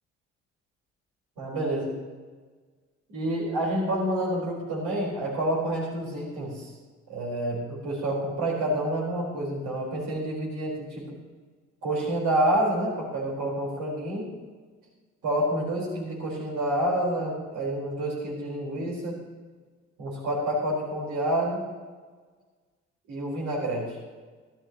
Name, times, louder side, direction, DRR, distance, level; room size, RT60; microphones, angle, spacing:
voice 1, 1.4-1.9 3.1-6.7 7.1-11.0 11.8-14.3 15.2-19.2 20.0-21.7 23.1-24.0, right 1 dB, 75° right, -3 dB, 4.6 m, -28 dB
15.5 x 13.0 x 3.0 m, 1.4 s
hypercardioid pair, 55°, 31 cm